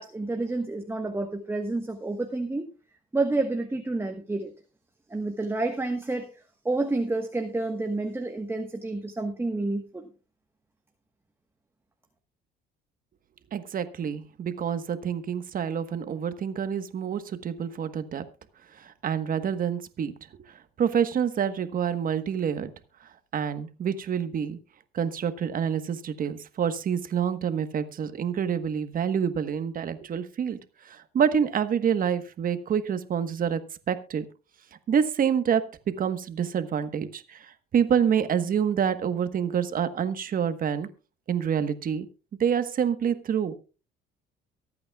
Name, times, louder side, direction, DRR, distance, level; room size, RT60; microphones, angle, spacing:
voice 1, 0.0-2.7 3.1-4.5 5.1-6.3 6.6-10.0, right 2 dB, 10° right, 5 dB, 1.3 m, -29 dB
voice 2, 13.5-18.2 18.8-20.1 20.8-22.7 23.3-24.6 24.9-30.6 30.8-33.6 33.9-34.2 34.9-35.6 36.0-40.9 41.3-42.1 42.4-43.5, right 8 dB, 45° right, 11 dB, 1.3 m, -27 dB
23.5 x 8.7 x 2.4 m, 0.33 s
supercardioid pair, 90°, 19 cm